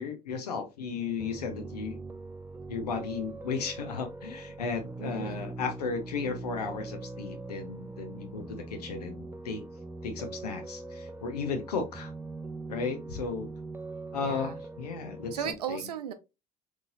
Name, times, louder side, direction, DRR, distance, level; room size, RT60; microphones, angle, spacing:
voice 1, 0.0-2.0 2.7-9.6 10.0-12.1 12.7-13.5 14.1-15.8, left 5 dB, 85° left, 6 dB, 0.8 m, -35 dB
Piano, 1.2-15.5, right 3 dB, 10° right, 0.5 m, -42 dB
voice 2, 5.0-5.5 14.2-14.6 15.3-16.1, right 9 dB, 85° right, 9 dB, 0.5 m, -36 dB
3.8 x 3.1 x 2.4 m, 0.25 s
hypercardioid pair, 60°, 20 cm